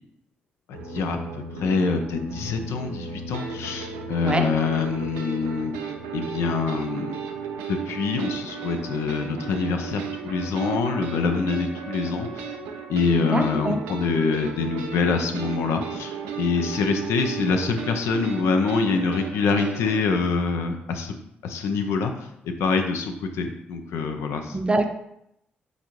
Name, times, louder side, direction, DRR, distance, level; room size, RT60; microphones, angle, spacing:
voice 1, 0.7-5.7 6.1-7.2 7.7-12.6 12.9-21.1 21.4-24.6, left 4 dB, 75° left, 5 dB, 0.4 m, -25 dB
sound 1, 0.7-20.0, right 5 dB, 90° right, 0.4 m, -35 dB
voice 2, 13.3-13.8 24.5-25.0, right 2 dB, 25° right, 6 dB, 0.6 m, -24 dB
5.1 x 2.5 x 3.0 m, 0.79 s
hypercardioid pair, 45°, 5 cm